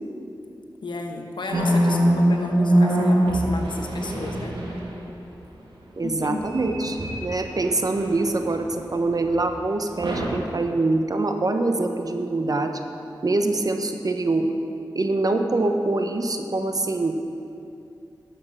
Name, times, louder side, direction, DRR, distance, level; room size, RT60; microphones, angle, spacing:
voice 1, 0.8-4.6 6.0-6.4 6.8-6.9, left 2 dB, 75° left, 3 dB, 1.2 m, -33 dB
sound 1, 1.5-5.1 6.4-8.7 9.2-9.4 10.0-10.3, right 1 dB, 80° right, 1.8 m, -23 dB
voice 2, 6.0-12.8 13.2-14.5 14.9-17.1, right 2 dB, 50° right, 6 dB, 0.9 m, -24 dB
11.0 x 7.2 x 6.4 m, 2.7 s
cardioid pair, 55°, 8 cm